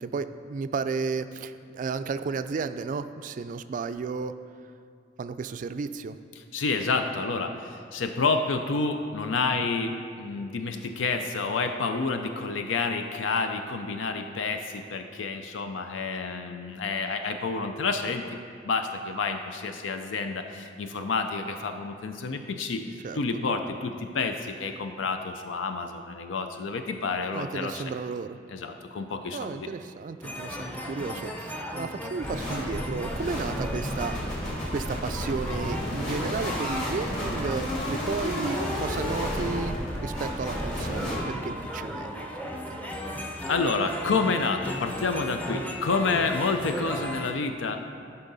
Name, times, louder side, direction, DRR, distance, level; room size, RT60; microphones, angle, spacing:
voice 1, 0.0-4.3 5.2-6.2 23.0-23.4 27.3-28.4 29.3-34.5 34.7-39.7 40.0-42.8, right 4 dB, 45° right, 11 dB, 0.3 m, -33 dB
voice 2, 6.4-18.4 18.6-27.8 28.5-29.7 43.5-47.9, left 4 dB, 90° left, 6 dB, 0.5 m, -29 dB
sound 1, 30.2-47.3, equal, 10° left, 0.6 m, -36 dB
sound 2, 32.2-41.2, left 1 dB, 40° left, 2.3 m, -32 dB
12.0 x 5.6 x 4.0 m, 2.3 s
head